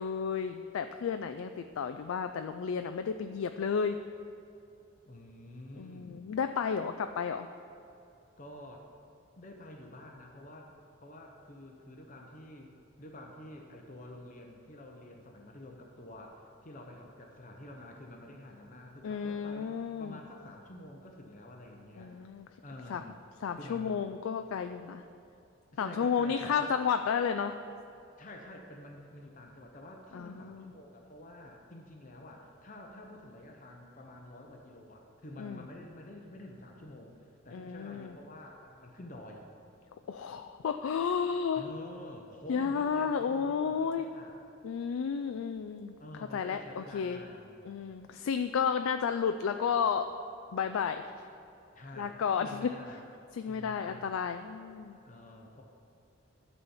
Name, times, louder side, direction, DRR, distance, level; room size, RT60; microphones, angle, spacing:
voice 1, 0.0-4.0 5.8-7.5 19.0-20.2 22.0-22.5 22.9-23.0 23.4-25.0 25.8-27.5 30.1-30.7 35.4-35.6 37.5-38.1 40.1-41.6 42.5-44.1 44.6-45.9 46.3-47.2 47.6-50.1 50.5-51.0 52.0-52.7 53.3-55.0, left 6 dB, 80° left, 8 dB, 0.3 m, -32 dB
voice 2, 5.1-6.3 8.4-8.9 9.4-12.7 13.0-22.1 22.6-23.2 23.5-24.0 25.7-26.7 28.2-39.5 41.5-44.3 46.0-47.7 51.7-53.0 53.5-54.1 55.0-55.6, left 1 dB, 35° left, 1 dB, 0.8 m, -49 dB
12.5 x 4.2 x 7.1 m, 2.7 s
head